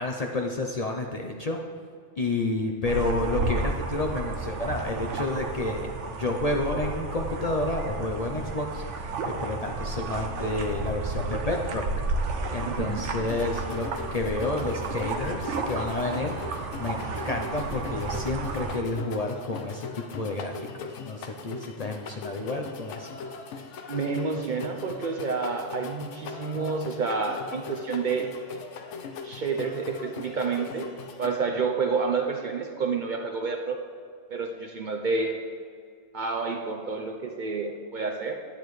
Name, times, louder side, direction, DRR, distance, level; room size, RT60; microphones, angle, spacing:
voice 1, 0.0-1.6 2.2-11.8 12.5-23.1, left 2 dB, 45° left, 1 dB, 0.6 m, -30 dB
sound 1, 2.9-18.8, right 3 dB, 85° right, 1.1 m, -32 dB
voice 2, 12.7-13.1 23.9-28.4 29.2-30.9 31.2-33.8 34.3-35.4 36.1-38.4, right 4 dB, 50° right, 4 dB, 0.6 m, -29 dB
sound 2, 13.2-31.3, left 5 dB, 80° left, 1.0 m, -40 dB
10.5 x 8.7 x 3.2 m, 2.3 s
omnidirectional pair, 1.2 m